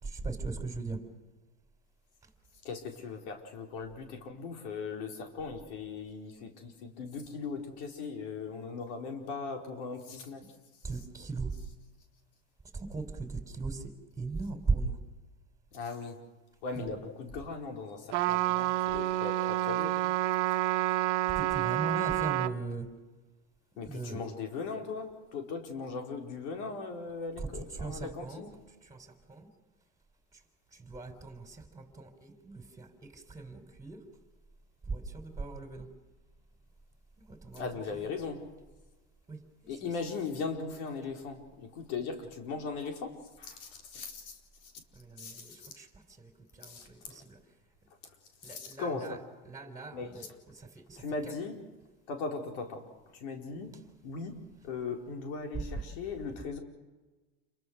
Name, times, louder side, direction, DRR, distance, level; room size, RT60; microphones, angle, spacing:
voice 1, 0.0-1.0 10.8-11.5 12.7-13.9 14.2-15.0 16.8-16.9 18.9-19.0 21.3-22.9 23.8-24.2 27.4-28.5 28.8-29.5 30.3-30.4 30.7-34.0 34.8-35.9 37.2-37.7 39.3-39.9 44.9-47.4 48.4-49.2 49.4-51.4 55.6-55.7, right 3 dB, 10° right, 6 dB, 3.8 m, -38 dB
voice 2, 2.6-10.4 15.7-16.2 16.6-20.0 23.8-28.5 37.5-38.5 39.7-44.7 45.2-45.7 46.6-46.9 47.1-47.2 48.4-49.2 49.9-50.3 51.0-51.6 52.1-52.8 53.1-53.7 54.0-54.4 54.6-56.6, left 4 dB, 75° left, 3 dB, 4.7 m, -39 dB
Trumpet, 18.1-22.5, right 15 dB, 90° right, 1.3 m, -29 dB
29.0 x 23.0 x 6.4 m, 1.2 s
supercardioid pair, 145°, 35 cm